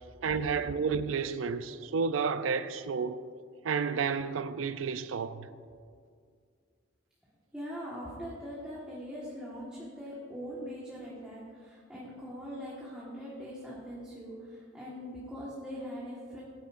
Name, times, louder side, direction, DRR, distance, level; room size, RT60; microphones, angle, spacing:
voice 1, 0.2-3.2 3.6-5.5, right 5 dB, 80° right, 0.5 m, -31 dB
voice 2, 7.5-16.4, equal, 5° right, 1.5 m, -42 dB
17.0 x 9.2 x 2.6 m
head